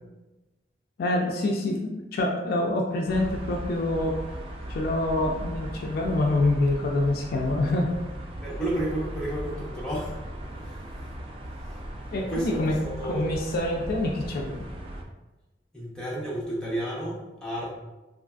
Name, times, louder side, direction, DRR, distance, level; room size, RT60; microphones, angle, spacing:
voice 1, 1.0-4.2 4.7-7.9 12.1-14.7, left 2 dB, 60° left, 1 dB, 0.3 m, -26 dB
sound 1, 3.1-15.0, right 1 dB, 30° right, 0.3 m, -38 dB
voice 2, 8.4-10.1 10.6-10.7 12.1-13.3 15.7-17.7, right 1 dB, 5° left, -7 dB, 0.8 m, -31 dB
3.1 x 2.4 x 2.3 m, 1.1 s
head